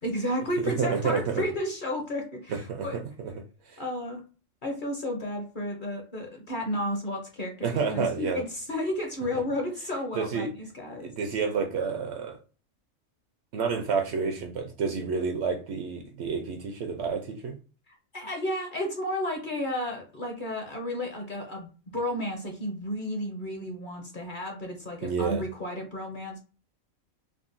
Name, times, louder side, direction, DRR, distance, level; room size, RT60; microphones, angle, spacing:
voice 1, 0.0-3.0 3.8-4.2 4.6-11.1 17.9-26.4, left 1 dB, 50° left, 0.7 m, -32 dB
voice 2, 0.6-1.4 2.5-2.9 3.2-3.3 3.7-3.8 7.6-8.4 9.3-9.4 10.1-10.5 11.0-12.4 13.5-17.6 25.0-25.4, right 5 dB, 65° right, 0.7 m, -29 dB
3.7 x 2.1 x 2.5 m
omnidirectional pair, 1.4 m